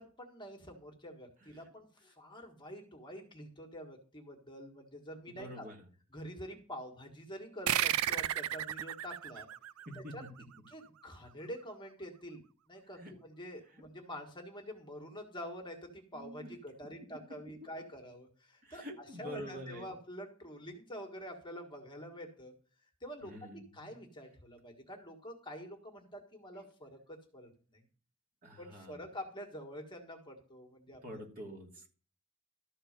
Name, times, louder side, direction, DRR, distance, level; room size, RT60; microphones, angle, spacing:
voice 1, 0.0-5.7 6.1-9.5 10.0-10.2 10.7-12.4 12.7-22.5 23.0-27.8 28.6-31.0, equal, 20° left, 2 dB, 1.6 m, -47 dB
voice 2, 5.3-5.8 10.0-10.1 12.9-13.1 13.7-13.8 16.1-16.5 18.6-19.9 23.2-23.9 28.4-29.0 31.0-31.9, equal, 45° right, 0 dB, 2.6 m, -47 dB
sound 1, 7.7-10.7, right 12 dB, 70° right, 0.4 m, -34 dB
13.0 x 4.4 x 6.5 m, 0.41 s
head